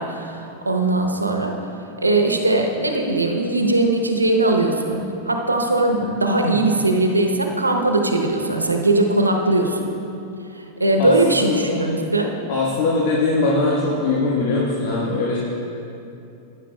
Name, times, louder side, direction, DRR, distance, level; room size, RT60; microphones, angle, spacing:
voice 1, 0.0-1.5 2.0-9.8 10.8-12.3, right 2 dB, 90° right, 3 dB, 0.8 m, -20 dB
voice 2, 11.0-11.8 12.5-15.4, left 3 dB, 50° left, -4 dB, 1.3 m, -21 dB
15.0 x 9.5 x 2.3 m, 2.8 s
figure-of-eight pair, 95°, 0 cm